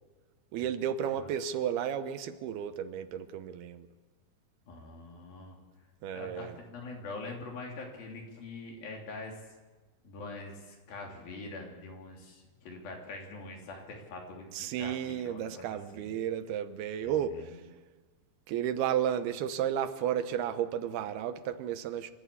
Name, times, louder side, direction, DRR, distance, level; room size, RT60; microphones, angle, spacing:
voice 1, 0.5-3.9 6.0-6.6 14.5-17.6 18.5-22.1, right 9 dB, 80° right, 11 dB, 2.9 m, -33 dB
voice 2, 4.7-5.6 6.1-9.4 10.0-16.1 17.0-17.6, left 3 dB, 65° left, 1 dB, 5.0 m, -44 dB
26.5 x 13.0 x 8.5 m, 1.3 s
omnidirectional pair, 4.5 m